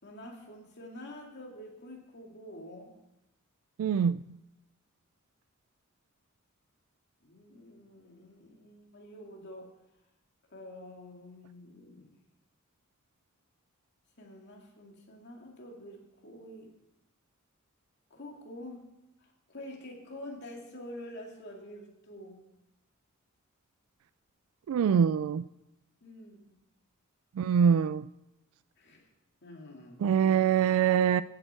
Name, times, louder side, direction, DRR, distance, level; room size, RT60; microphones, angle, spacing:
voice 1, 0.0-2.9 7.2-9.7 10.5-12.1 14.2-16.7 18.1-18.9 19.2-22.4 26.0-26.6 28.8-29.1 29.4-30.1, left 1 dB, 55° left, 0 dB, 2.4 m, -47 dB
voice 2, 3.8-4.2 24.7-25.4 27.4-28.1 30.0-31.2, right 7 dB, 80° right, 15 dB, 0.3 m, -24 dB
16.0 x 8.9 x 4.4 m, 0.91 s
head